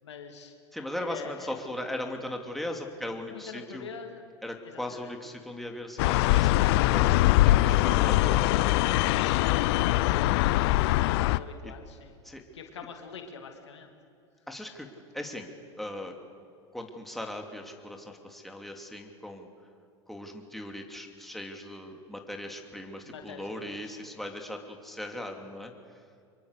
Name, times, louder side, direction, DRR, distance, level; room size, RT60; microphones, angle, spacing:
voice 1, 0.0-0.5 1.0-1.5 3.3-4.2 4.6-5.1 9.2-10.4 11.0-12.2 12.5-13.9 23.0-24.1, left 6 dB, 90° left, 4 dB, 2.5 m, -45 dB
voice 2, 0.7-3.9 4.4-6.5 6.9-9.3 12.2-12.4 14.5-14.9 15.1-15.5 15.8-16.1 16.7-19.5 20.1-25.7, left 1 dB, ahead, 2 dB, 2.8 m, -38 dB
sound 1, 6.0-11.4, left 17 dB, 65° left, 0.6 m, -22 dB
25.0 x 23.0 x 6.7 m, 2.3 s
hypercardioid pair, 95°, 14 cm